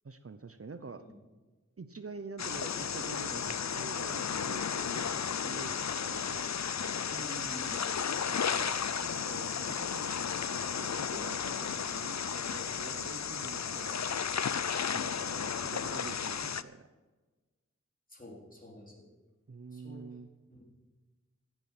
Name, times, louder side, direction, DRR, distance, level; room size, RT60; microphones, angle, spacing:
voice 1, 0.0-1.0 1.8-6.4 8.1-14.3 14.9-16.9 19.5-20.3, right 4 dB, 50° right, 10 dB, 0.8 m, -47 dB
sound 1, 2.4-16.6, left 7 dB, 65° left, 0.5 m, -34 dB
voice 2, 7.1-7.8 18.1-19.1 19.7-20.1 20.5-20.6, left 1 dB, 30° left, -1 dB, 4.1 m, -48 dB
16.0 x 9.0 x 6.0 m, 1.3 s
wide cardioid pair, 45°, 30 cm